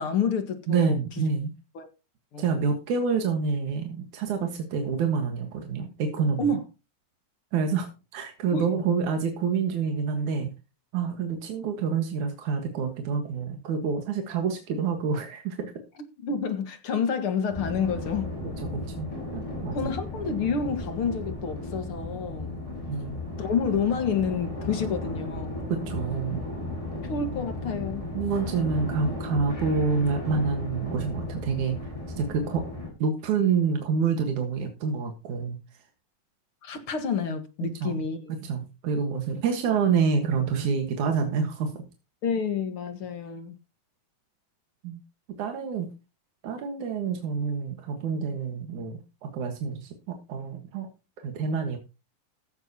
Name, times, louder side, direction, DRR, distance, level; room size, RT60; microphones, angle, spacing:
voice 1, 0.0-1.0 1.8-1.9 2.3-2.5 6.4-6.6 8.5-8.7 16.2-18.3 19.7-22.6 23.4-25.7 27.1-28.0 36.6-38.3 42.2-43.5, left 5 dB, 50° left, 2.3 m, -29 dB
voice 2, 0.7-1.5 2.4-6.5 7.5-10.5 10.9-15.7 18.7-19.1 19.3-19.8 22.9-23.2 25.7-26.4 28.1-31.8 32.2-32.6 33.0-35.6 37.8-38.0 38.4-41.7 44.8-45.0 45.4-45.9 46.4-50.9 51.2-51.8, right 5 dB, 80° right, 3.0 m, -27 dB
sound 1, 17.5-32.9, left 1 dB, 10° left, 4.9 m, -35 dB
15.5 x 11.0 x 2.9 m
omnidirectional pair, 3.4 m